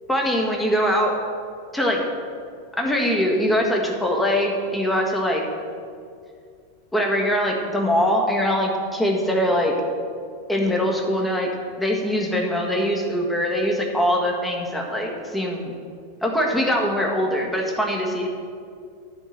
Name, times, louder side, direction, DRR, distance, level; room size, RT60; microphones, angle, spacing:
voice 1, 0.1-1.2 1.7-2.0 2.8-5.4 6.9-9.7 10.5-11.5 11.8-15.7 16.2-18.3, equal, 5° left, 0 dB, 1.6 m, -22 dB
10.5 x 5.4 x 7.4 m, 2.3 s
figure-of-eight pair, 90°, 0 cm